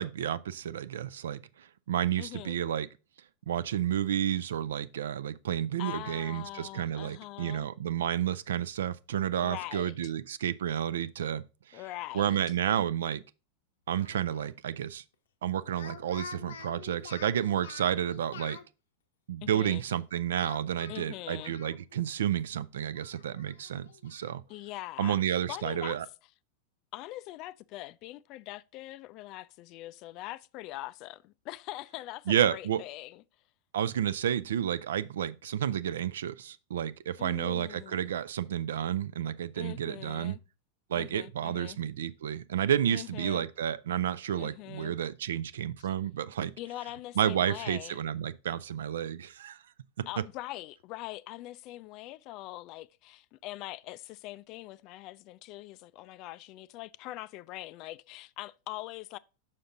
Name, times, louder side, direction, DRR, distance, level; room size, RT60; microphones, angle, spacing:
voice 1, 0.0-2.9 3.5-11.4 11.7-11.8 12.1-13.2 13.9-15.0 15.4-18.6 19.3-24.4 25.0-26.1 32.3-32.8 33.7-40.4 40.9-46.5 47.2-49.6 50.0-50.1, right 10 dB, 60° right, 0.4 m, -31 dB
voice 2, 2.2-2.6 5.8-7.7 9.4-9.9 11.7-12.4 19.4-19.8 20.9-21.6 24.5-26.0 26.9-33.2 37.2-38.2 39.6-40.4 40.9-41.8 42.9-43.4 44.4-44.9 45.8-45.9 46.6-48.0 50.1-59.2, left 17 dB, 40° left, 0.3 m, -42 dB
Speech, 13.9-14.5 15.6-18.7 20.4-22.1 22.4-22.5 22.9-24.4, left 6 dB, 65° left, 0.7 m, -48 dB
6.4 x 5.8 x 3.7 m
figure-of-eight pair, 90°, 0 cm